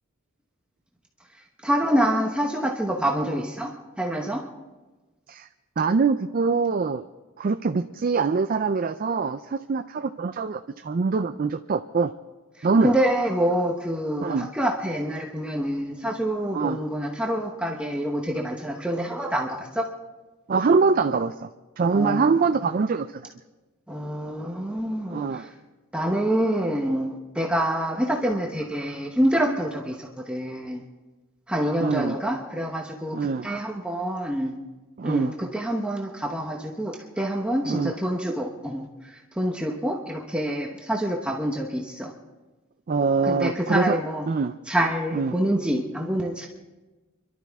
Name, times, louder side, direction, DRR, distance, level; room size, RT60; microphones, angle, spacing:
voice 1, 1.6-3.7 4.0-4.4 12.6-19.9 21.9-22.4 23.9-25.4 25.9-30.8 31.5-34.5 35.0-38.8 39.4-42.1 43.2-44.3 44.7-46.5, right 1 dB, 5° right, 0 dB, 0.9 m, -26 dB
voice 2, 5.8-7.0 7.4-12.1 12.6-12.9 14.2-14.5 16.5-16.8 20.5-21.5 21.8-23.2 25.1-25.5 31.8-32.2 33.1-33.5 35.0-35.3 37.6-37.9 42.9-44.0 44.3-44.5 45.1-45.4, right 4 dB, 40° right, 9 dB, 0.4 m, -24 dB
29.5 x 12.0 x 3.5 m, 1.2 s
head